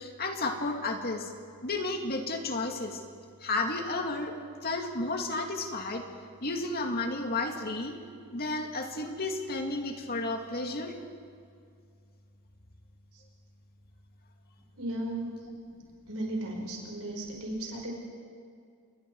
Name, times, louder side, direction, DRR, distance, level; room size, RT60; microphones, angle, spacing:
voice 1, 0.0-1.3 1.6-3.0 3.4-4.4 4.6-6.0 6.4-7.9 8.3-10.9 15.8-15.9, left 2 dB, 45° left, 3 dB, 2.3 m, -32 dB
voice 2, 14.8-15.3 16.1-17.9, right 1 dB, 70° right, 0 dB, 5.3 m, -35 dB
28.0 x 22.5 x 4.8 m, 2.3 s
head